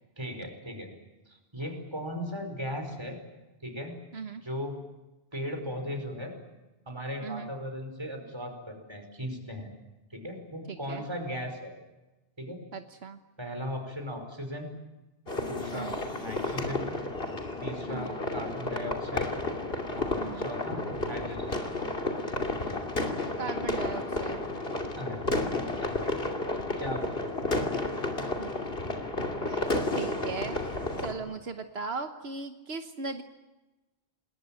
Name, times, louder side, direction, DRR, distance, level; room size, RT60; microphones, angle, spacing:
voice 1, 0.2-0.9 1.3-3.2 3.6-4.0 4.4-4.8 5.3-6.4 6.9-9.7 10.1-11.7 12.4-12.6 13.4-14.7 15.4-16.9 17.6-19.3 20.0-21.6 25.0-25.2 25.8-26.3 26.8-27.2, equal, 25° right, 4 dB, 5.2 m, -37 dB
voice 2, 10.7-11.1 12.7-13.2 15.7-16.0 17.9-18.2 20.2-20.5 23.4-24.4 28.4-28.5 29.4-33.2, right 4 dB, 80° right, 7 dB, 1.4 m, -38 dB
sound 1, 15.3-31.1, left 2 dB, 65° left, 3.0 m, -32 dB
27.5 x 20.5 x 9.0 m, 1.1 s
omnidirectional pair, 1.0 m